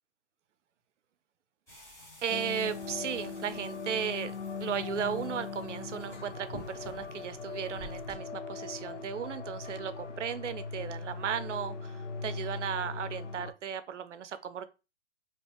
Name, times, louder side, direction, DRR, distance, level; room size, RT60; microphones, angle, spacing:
sound 1, 1.7-8.2, left 1 dB, 10° left, 0.8 m, -51 dB
voice 1, 2.2-4.3 4.6-14.7, right 8 dB, 80° right, 0.6 m, -36 dB
sound 2, 2.3-13.5, left 4 dB, 85° left, 0.6 m, -40 dB
2.9 x 2.2 x 3.3 m
hypercardioid pair, 135°, 35 cm